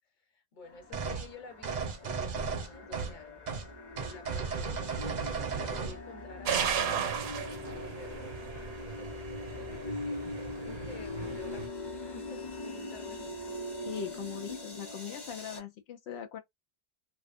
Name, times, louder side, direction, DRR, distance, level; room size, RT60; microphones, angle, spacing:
voice 1, 0.3-3.5 4.1-4.7 5.5-10.3 10.6-13.6, left 4 dB, 50° left, 1.1 m, -51 dB
sound 1, 0.7-15.6, left 2 dB, 25° left, 0.9 m, -42 dB
sound 2, 0.9-1.3 1.6-3.2 3.5-3.7 4.0-6.0, right 5 dB, 50° right, 0.6 m, -35 dB
sound 3, 6.5-11.7, right 7 dB, 80° right, 0.9 m, -35 dB
voice 2, 13.8-16.4, left 8 dB, 85° left, 0.8 m, -40 dB
2.5 x 2.3 x 2.4 m
omnidirectional pair, 1.1 m